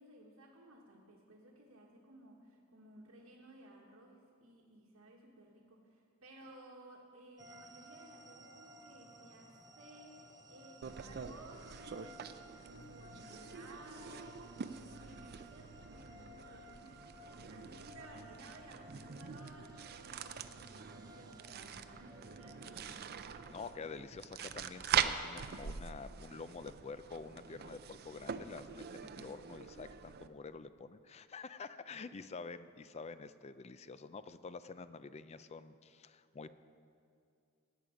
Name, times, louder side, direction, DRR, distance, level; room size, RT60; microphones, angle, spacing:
voice 1, 0.0-17.2 17.5-23.5, right 1 dB, 85° right, -3 dB, 1.4 m, -57 dB
sound 1, 7.4-23.7, left 1 dB, 20° right, 0.7 m, -58 dB
sound 2, 10.8-30.3, right 7 dB, 50° right, 0.5 m, -43 dB
voice 2, 23.5-36.5, left 4 dB, 30° left, 13 dB, 0.4 m, -48 dB
17.0 x 8.6 x 5.1 m, 2.4 s
head